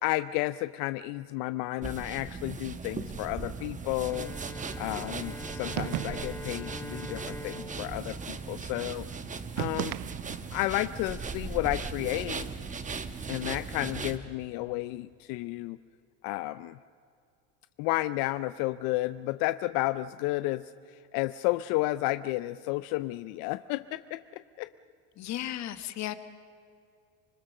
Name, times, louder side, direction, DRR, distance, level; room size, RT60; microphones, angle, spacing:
voice 1, 0.0-4.3 4.8-9.1 9.6-9.9 10.5-12.5 13.3-15.8 16.2-16.8 17.8-24.7, left 18 dB, 85° left, 14 dB, 0.5 m, -32 dB
sound 1, 1.8-14.2, right 5 dB, 25° right, 1.1 m, -38 dB
Bowed string instrument, 4.0-9.5, left 1 dB, 5° left, 0.8 m, -44 dB
sound 2, 5.8-6.5 9.6-10.6, right 19 dB, 85° right, 0.5 m, -35 dB
voice 2, 25.2-26.1, left 13 dB, 55° left, 11 dB, 1.3 m, -35 dB
25.5 x 21.0 x 6.6 m, 2.5 s
cardioid pair, 125°, 33 cm